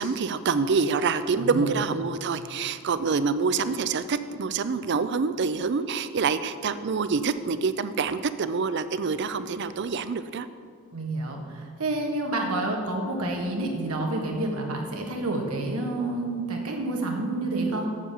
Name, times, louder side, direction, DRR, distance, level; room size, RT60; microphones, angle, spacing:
voice 1, 0.0-10.5, right 5 dB, 50° right, 13 dB, 0.4 m, -26 dB
voice 2, 1.4-1.9 10.9-17.9, right 2 dB, 90° right, 1 dB, 1.5 m, -29 dB
7.3 x 6.8 x 7.4 m, 2.2 s
head